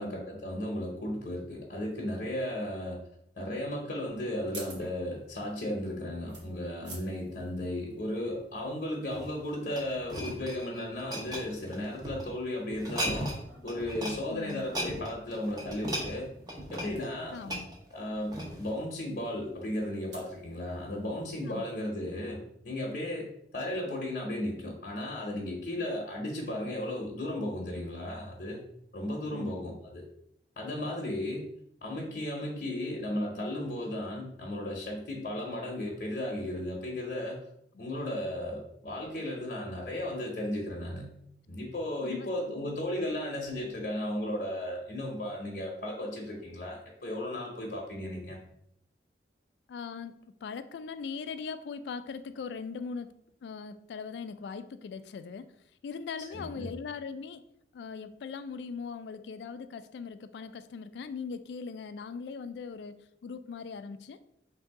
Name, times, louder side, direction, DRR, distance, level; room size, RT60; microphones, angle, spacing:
voice 1, 0.0-3.0 3.4-13.3 13.6-16.3 16.7-17.3 17.9-22.4 22.6-23.3 23.5-28.6 28.9-30.0 30.6-31.4 31.8-37.4 37.8-41.1 41.5-48.4 56.3-56.7, left 1 dB, 55° left, -2 dB, 0.8 m, -35 dB
sound 1, 4.1-21.5, right 2 dB, 85° right, 1.2 m, -55 dB
sound 2, 9.1-12.2 12.7-13.4 13.7-14.2 14.5-18.8 19.3-19.5, equal, 20° right, 0.7 m, -37 dB
voice 2, 14.3-14.7 17.3-17.7 21.5-21.6 29.3-29.6 42.0-42.7 43.0-43.1 49.7-55.6 55.8-57.4 57.7-64.2, left 5 dB, 80° left, 12 dB, 0.3 m, -40 dB
3.5 x 2.7 x 4.7 m, 0.73 s
head